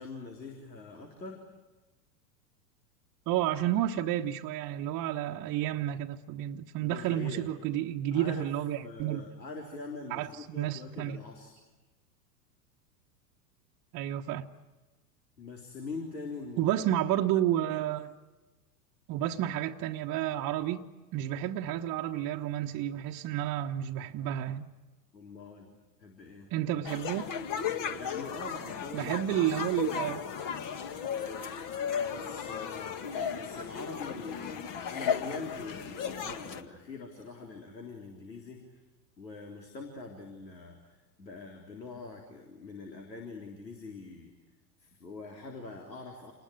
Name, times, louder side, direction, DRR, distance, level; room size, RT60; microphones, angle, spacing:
voice 1, 0.0-1.4 6.8-7.5 8.1-8.5 8.8-11.5 15.4-16.7 25.1-25.7 26.0-26.5 27.9-29.1 29.5-29.6 32.0-38.6 39.2-40.9 41.2-44.3 44.8-46.3, left 3 dB, 90° left, 3.9 m, -43 dB
voice 2, 3.3-9.2 10.1-11.2 13.9-14.5 16.6-18.1 19.1-20.9 21.1-24.7 26.5-27.2 28.9-30.2, right 12 dB, 40° right, 1.2 m, -31 dB
sound 1, 26.9-36.6, left 7 dB, 40° left, 2.1 m, -35 dB
28.0 x 20.0 x 9.4 m
hypercardioid pair, 95°, 49 cm